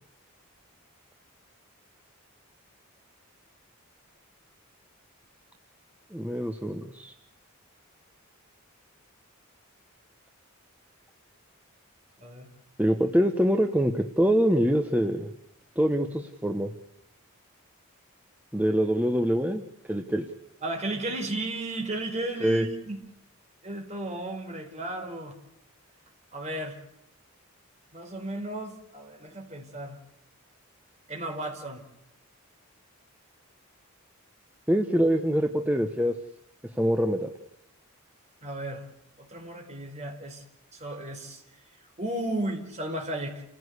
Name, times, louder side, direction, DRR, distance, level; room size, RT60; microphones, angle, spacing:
voice 1, 6.1-7.1 12.8-15.3 15.8-16.7 18.5-20.3 22.4-22.7 34.7-36.1 36.7-37.3, equal, 5° right, 5 dB, 1.1 m, -24 dB
voice 2, 20.6-23.0 23.6-25.4 26.3-26.8 27.9-30.0 31.1-31.8 38.4-38.9 39.2-40.4 40.7-41.4 42.0-43.4, right 1 dB, 30° right, 3 dB, 4.7 m, -34 dB
30.0 x 16.0 x 8.3 m, 0.84 s
head